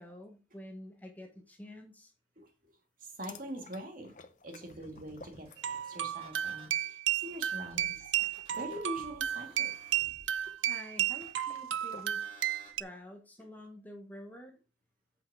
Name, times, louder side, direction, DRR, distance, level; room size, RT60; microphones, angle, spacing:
voice 1, 0.0-2.1 10.7-12.3 12.8-14.6, equal, 10° left, 3 dB, 1.2 m, -48 dB
sound 1, 3.1-6.1 6.3-6.7 7.8-12.2, left 4 dB, 45° left, 0.8 m, -55 dB
voice 2, 3.2-4.1 4.4-8.0 8.5-9.7, right 1 dB, 45° right, 3 dB, 2.1 m, -43 dB
sound 2, 4.7-6.8 7.2-12.7, equal, 30° right, 3.4 m, -58 dB
sound 3, 5.6-12.8, right 11 dB, 80° right, 0.4 m, -33 dB
8.2 x 5.7 x 4.8 m, 0.32 s
head